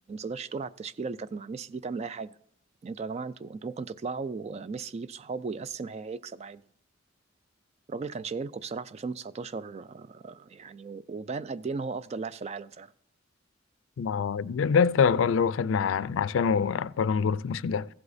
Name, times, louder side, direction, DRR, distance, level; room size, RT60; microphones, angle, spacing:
voice 1, 0.1-2.3 2.8-6.6 7.9-12.9, right 4 dB, 35° right, 0.3 m, -36 dB
voice 2, 14.0-17.9, left 6 dB, 90° left, 0.4 m, -25 dB
15.0 x 8.0 x 2.6 m
head